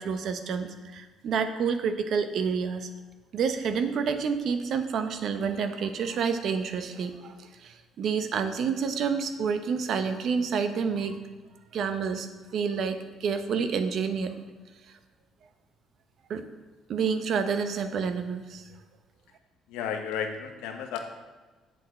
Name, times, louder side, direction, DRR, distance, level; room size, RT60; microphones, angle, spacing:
voice 1, 0.0-2.9 3.3-11.2 11.7-12.3 12.5-14.4 16.3-16.4 16.9-18.7, right 6 dB, 65° right, 9 dB, 0.7 m, -29 dB
voice 2, 19.7-21.0, left 7 dB, 90° left, 5 dB, 0.9 m, -33 dB
7.6 x 6.5 x 4.3 m, 1.3 s
cardioid pair, 85°, 0 cm